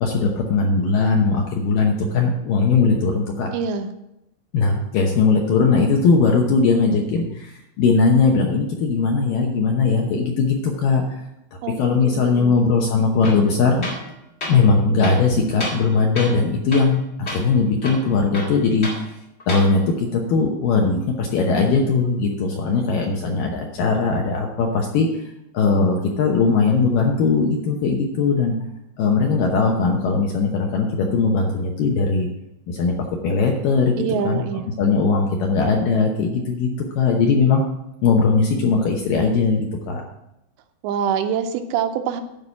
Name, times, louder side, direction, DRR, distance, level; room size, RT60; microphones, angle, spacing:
voice 1, 0.0-3.5 4.5-11.0 11.8-13.9 14.5-18.9 19.5-25.1 25.5-28.6 29.0-32.3 32.7-32.9 33.2-34.0 34.2-34.4 34.8-36.7 37.0-37.6 38.0-40.0, left 4 dB, 70° left, 1 dB, 2.2 m, -19 dB
voice 2, 3.5-3.9 11.6-11.8 12.0-12.7 34.0-34.7 40.8-42.2, right 7 dB, 85° right, 7 dB, 2.9 m, -25 dB
Tools, 13.2-13.4 13.8-14.1 14.4-14.6 15.0-15.9 16.2-16.4 16.7-17.0 17.3-17.4 17.8-19.0 19.4-19.7, left 1 dB, 55° left, 0.7 m, -31 dB
12.0 x 4.8 x 7.0 m, 0.86 s
omnidirectional pair, 5.1 m